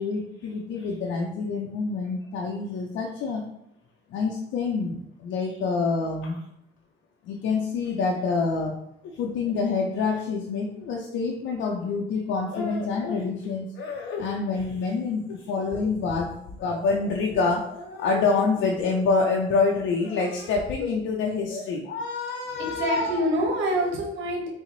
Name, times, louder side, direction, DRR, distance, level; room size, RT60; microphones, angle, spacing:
voice 1, 0.0-3.4 4.1-6.4 7.2-8.8 9.0-23.2, left 4 dB, 75° left, -1 dB, 0.4 m, -27 dB
voice 2, 22.5-24.5, right 1 dB, 80° right, 0 dB, 0.8 m, -26 dB
3.7 x 2.0 x 3.0 m, 0.75 s
cardioid pair, 90°, 20 cm